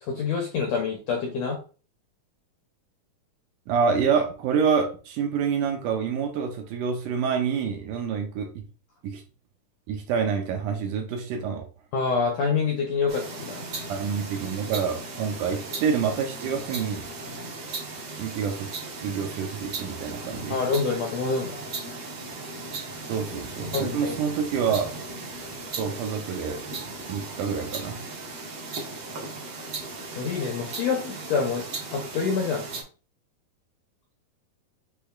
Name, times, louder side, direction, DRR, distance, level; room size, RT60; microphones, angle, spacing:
voice 1, 0.0-1.6 11.9-13.7 20.5-21.6 23.7-24.2 30.1-31.7 31.9-32.6, left 5 dB, 75° left, 1 dB, 1.6 m, -26 dB
voice 2, 3.7-8.6 9.0-9.2 9.9-11.7 13.9-17.1 18.2-18.7 19.0-20.6 23.1-24.9 25.8-26.8 27.1-28.0, right 6 dB, 75° right, 3 dB, 2.2 m, -27 dB
sound 1, 13.1-32.8, right 3 dB, 50° right, 1.3 m, -37 dB
6.8 x 3.3 x 2.3 m, 0.36 s
omnidirectional pair, 3.9 m